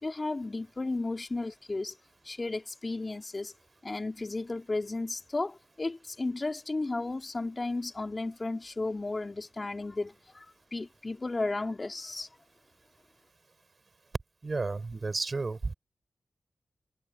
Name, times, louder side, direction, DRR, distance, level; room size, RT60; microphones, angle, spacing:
voice 1, 0.0-2.0 2.2-3.5 3.8-12.3, left 2 dB, 35° left, 3.5 m, -34 dB
voice 2, 14.4-15.7, right 3 dB, 45° right, 5.5 m, -32 dB
cardioid pair, 65°, 0 cm